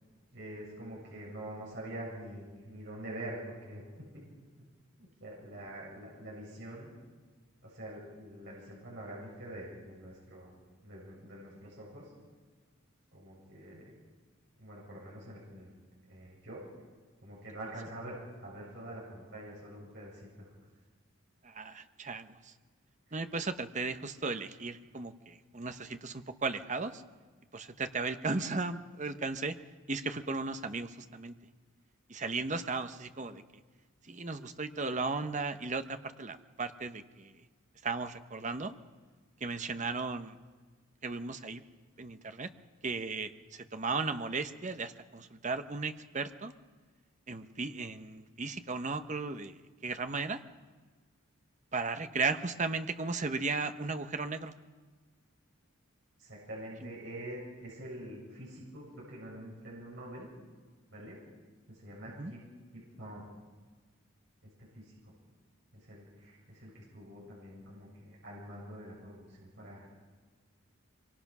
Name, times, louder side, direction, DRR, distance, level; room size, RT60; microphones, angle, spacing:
voice 1, 0.3-4.2 4.6-4.7 5.0-6.9 7.6-10.5 10.8-12.1 13.1-13.9 14.6-15.7 16.1-16.6 17.2-20.5 23.1-23.3 56.2-60.3 60.9-61.2 61.7-62.4 63.0-63.2 64.7-65.1 65.7-69.9, right 1 dB, 60° right, -5 dB, 7.6 m, -45 dB
voice 2, 21.4-22.5 23.1-27.0 27.5-29.5 29.9-31.3 32.1-33.4 34.0-37.3 37.8-38.7 39.4-40.4 41.0-41.6 42.0-42.5 42.8-46.5 47.3-50.4 51.7-54.5 62.2-62.3, right 3 dB, 35° right, 9 dB, 1.0 m, -36 dB
25.0 x 23.5 x 6.1 m, 1.4 s
head